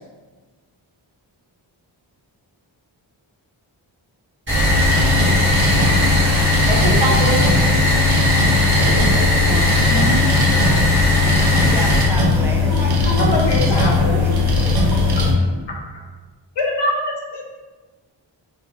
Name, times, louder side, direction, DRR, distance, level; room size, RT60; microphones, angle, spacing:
sound 1, 4.5-12.0, equal, 25° right, 1.3 m, -19 dB
sound 2, 4.5-15.3, left 3 dB, 55° right, 0.7 m, -18 dB
voice 1, 6.7-7.4 8.8-10.2 11.2-11.6, right 2 dB, 85° right, -3 dB, 0.9 m, -25 dB
voice 2, 11.5-15.1, right 1 dB, 5° right, -1 dB, 0.5 m, -32 dB
voice 3, 12.7-14.2 14.9-15.0 16.6-17.4, left 1 dB, 60° left, -2 dB, 0.8 m, -23 dB
2.9 x 2.5 x 3.5 m, 1.3 s
wide cardioid pair, 80°, 46 cm